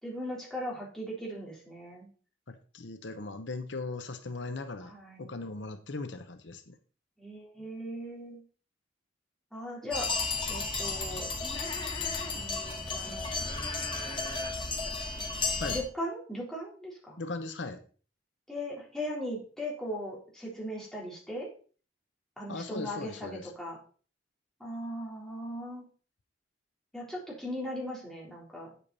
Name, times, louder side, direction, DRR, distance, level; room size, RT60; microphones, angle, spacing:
voice 1, 0.0-2.1 4.8-5.3 7.2-8.4 9.5-10.1 10.5-11.3 12.3-13.4 15.7-17.2 18.5-21.5 22.4-23.8 24.6-25.8 26.9-28.7, equal, 5° left, -4 dB, 3.7 m, -38 dB
voice 2, 2.5-4.9 5.2-6.8 15.6-15.8 17.2-17.8 22.5-23.5, left 3 dB, 70° left, 8 dB, 0.8 m, -38 dB
sound 1, 9.9-15.8, left 3 dB, 30° left, 1.9 m, -33 dB
8.8 x 8.3 x 4.1 m, 0.40 s
head